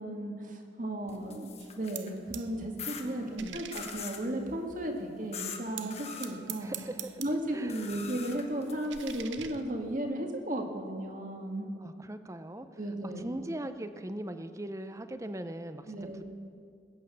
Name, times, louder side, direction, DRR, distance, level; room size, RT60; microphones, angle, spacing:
voice 1, 0.0-1.5 1.8-6.7 7.2-11.7 12.8-13.2 15.9-16.2, right 1 dB, 45° right, 3 dB, 1.8 m, -35 dB
sound 1, 1.1-2.2 2.8-3.0 3.7-4.2 5.3-5.6 5.9-6.3 7.7-9.2, left 7 dB, 35° left, 1.2 m, -42 dB
sound 2, 1.6-2.5 2.8-5.0 5.8-7.6 7.9-10.1, right 11 dB, 80° right, 0.8 m, -46 dB
voice 2, 3.0-3.6 6.6-7.2 7.5-7.9 11.8-12.7 13.0-16.2, right 1 dB, 15° right, 10 dB, 0.6 m, -40 dB
20.5 x 9.0 x 6.9 m, 2.3 s
head